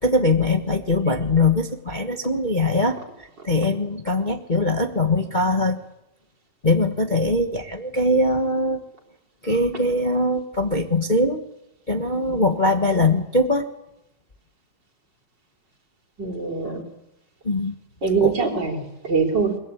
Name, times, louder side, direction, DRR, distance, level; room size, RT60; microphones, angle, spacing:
voice 1, 0.0-5.8 6.6-8.8 9.4-11.4 11.9-13.7 17.4-17.7 18.2-18.4, left 2 dB, 40° left, 5 dB, 0.6 m, -21 dB
voice 2, 16.2-16.8 18.0-19.6, right 5 dB, 35° right, 3 dB, 4.2 m, -23 dB
22.0 x 21.5 x 8.5 m, 0.86 s
omnidirectional pair, 3.4 m